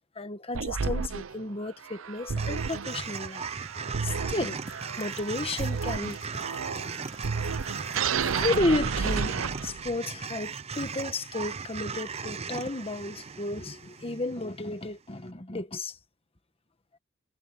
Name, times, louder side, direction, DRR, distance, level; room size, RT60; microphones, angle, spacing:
voice 1, 0.1-3.4 4.0-4.6 4.9-6.2 8.3-9.4 9.6-16.0, left 2 dB, 30° left, 1.5 m, -32 dB
sound 1, 0.5-10.0, right 5 dB, 80° right, 0.6 m, -32 dB
sound 2, 2.4-14.7, right 5 dB, 30° right, 0.6 m, -37 dB
sound 3, 4.4-9.5, left 13 dB, 85° left, 3.3 m, -54 dB
head